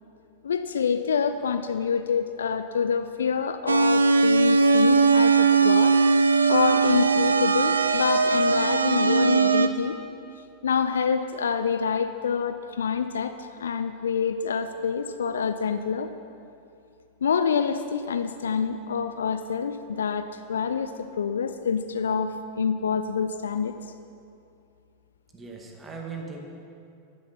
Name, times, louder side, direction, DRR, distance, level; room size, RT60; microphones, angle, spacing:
voice 1, 0.4-6.0 6.5-10.0 10.6-16.1 17.2-23.7, left 6 dB, 65° left, 10 dB, 0.4 m, -27 dB
sound 1, 3.7-9.7, right 4 dB, 75° right, 0.5 m, -20 dB
voice 2, 25.3-26.4, right 4 dB, 20° right, 1 dB, 1.9 m, -38 dB
10.5 x 10.5 x 5.7 m, 2.5 s
figure-of-eight pair, 90°, 0 cm